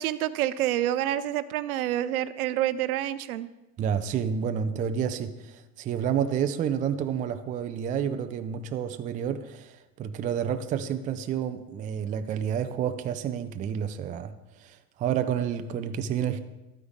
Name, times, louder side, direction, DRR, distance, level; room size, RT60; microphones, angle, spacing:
voice 1, 0.0-3.5, right 13 dB, 65° right, 15 dB, 0.7 m, -28 dB
voice 2, 3.8-14.3 14.6-16.4, right 8 dB, 20° right, 9 dB, 0.4 m, -29 dB
12.0 x 9.4 x 3.6 m, 0.99 s
hypercardioid pair, 90°, 48 cm